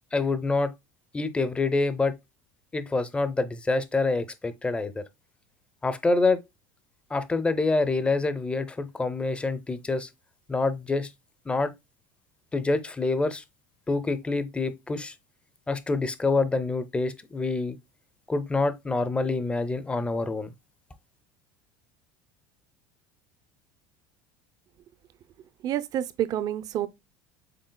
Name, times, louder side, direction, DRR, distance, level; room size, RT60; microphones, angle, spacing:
voice 1, 0.1-0.7 1.1-2.2 2.7-5.0 5.8-6.4 7.1-10.1 10.5-11.1 11.5-11.7 12.5-13.4 13.9-15.1 15.7-17.8 18.3-20.5, left 3 dB, 10° left, 0.6 m, -26 dB
voice 2, 25.6-26.9, right 11 dB, 45° right, 0.5 m, -28 dB
6.6 x 3.6 x 2.2 m
supercardioid pair, 120°, 9 cm